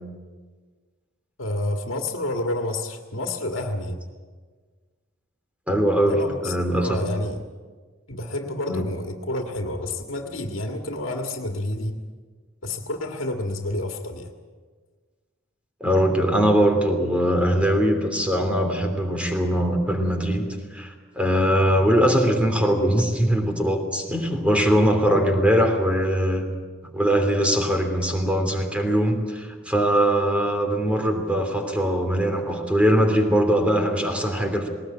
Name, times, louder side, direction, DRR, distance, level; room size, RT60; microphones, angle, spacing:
voice 1, 1.4-4.0 6.0-7.4 8.1-12.0 12.6-14.3 25.1-25.5, left 1 dB, 85° left, 3 dB, 1.8 m, -29 dB
voice 2, 5.7-7.0 8.7-8.9 15.8-20.5 20.7-26.5 26.9-34.7, equal, 5° right, 4 dB, 3.1 m, -21 dB
20.0 x 19.0 x 8.8 m, 1.5 s
head